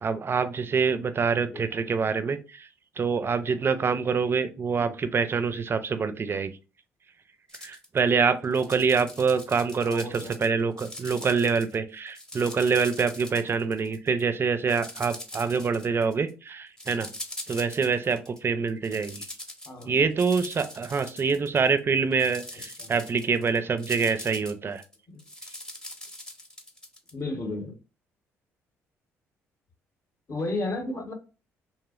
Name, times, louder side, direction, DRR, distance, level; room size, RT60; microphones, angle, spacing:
voice 1, 0.0-2.7 3.0-6.5 7.6-17.1 17.5-19.3 19.9-24.8, right 5 dB, 35° right, 0.4 m, -25 dB
voice 2, 1.5-1.8 4.8-5.0 9.8-10.4 19.7-20.0 22.5-22.9 25.1-25.2 27.1-27.8 30.3-31.1, left 2 dB, 45° left, 0.7 m, -34 dB
sound 1, 7.5-8.0 8.4-10.5 10.8-11.8 12.1-14.2 14.7-16.3 16.8-18.4 18.7-21.8 22.1-27.1, left 1 dB, 10° left, 0.6 m, -42 dB
2.6 x 2.0 x 2.3 m
hypercardioid pair, 50°, 7 cm